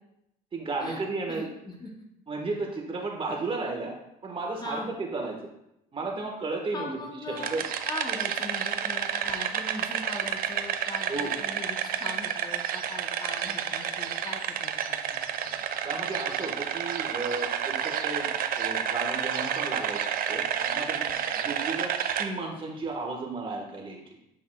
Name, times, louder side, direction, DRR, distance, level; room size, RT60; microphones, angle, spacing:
voice 1, 0.5-1.5 2.3-3.9 4.2-5.4 5.9-6.9 7.3-7.6 11.1-11.3 15.8-18.3 18.6-21.1 21.4-24.2, right 3 dB, 30° right, 0 dB, 1.4 m, -34 dB
voice 2, 1.3-1.9 4.6-4.9 6.7-7.6 7.9-15.6, left 2 dB, 25° left, 1 dB, 0.9 m, -40 dB
sound 1, 7.4-22.3, right 8 dB, 60° right, 0.5 m, -30 dB
7.5 x 5.6 x 2.3 m, 0.82 s
cardioid pair, 110°, 17 cm